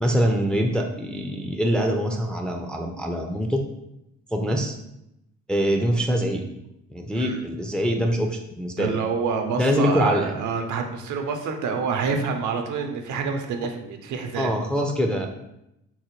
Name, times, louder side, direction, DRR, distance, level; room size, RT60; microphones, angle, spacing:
voice 1, 0.0-3.6 4.3-4.8 5.5-6.4 6.9-8.9 9.6-10.3 14.3-15.3, equal, 5° left, 2 dB, 0.3 m, -24 dB
voice 2, 8.8-14.5, right 5 dB, 75° right, 5 dB, 0.6 m, -27 dB
4.0 x 2.1 x 2.9 m, 0.83 s
cardioid pair, 90°, 30 cm